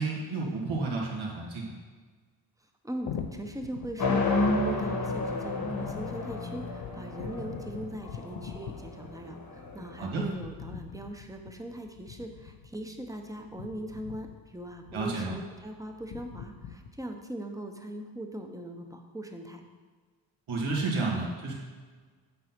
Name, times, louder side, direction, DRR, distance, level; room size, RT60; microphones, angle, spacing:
voice 1, 0.0-1.7 10.0-10.2 14.9-15.3 20.5-21.5, right 3 dB, 85° right, -3 dB, 1.9 m, -31 dB
voice 2, 2.8-19.6, right 1 dB, 5° right, 4 dB, 0.8 m, -40 dB
sound 1, 3.0-16.9, left 7 dB, 70° left, 0.7 m, -44 dB
sound 2, 4.0-10.1, left 2 dB, 50° left, 1.2 m, -31 dB
7.8 x 4.0 x 5.9 m, 1.5 s
cardioid pair, 100°, 46 cm